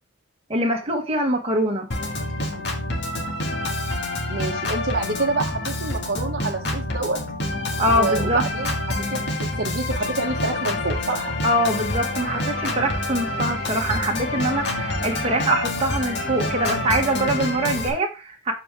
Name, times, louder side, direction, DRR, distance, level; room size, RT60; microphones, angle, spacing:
voice 1, 0.5-1.9 7.8-8.4 11.4-18.5, right 1 dB, 30° right, 1.5 m, -23 dB
Organ, 1.9-17.9, left 1 dB, 60° left, 2.0 m, -27 dB
voice 2, 4.3-7.2 7.9-8.8 9.1-11.3, right 3 dB, 55° right, 1.2 m, -27 dB
7.7 x 4.5 x 4.6 m
head